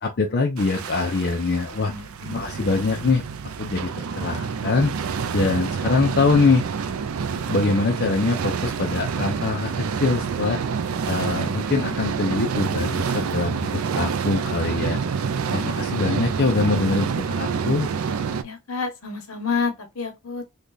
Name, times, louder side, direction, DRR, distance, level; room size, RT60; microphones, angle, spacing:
voice 1, 0.0-1.9 2.3-3.2 3.6-5.0 5.3-6.7 7.5-10.6 11.1-15.0 15.5-17.9, left 3 dB, 45° left, 0.5 m, -23 dB
sound 1, 0.6-18.4, right 6 dB, 70° right, 0.4 m, -27 dB
voice 2, 1.9-2.9 15.5-15.8 18.4-20.5, left 5 dB, 70° left, 1.1 m, -30 dB
3.3 x 2.3 x 3.9 m
head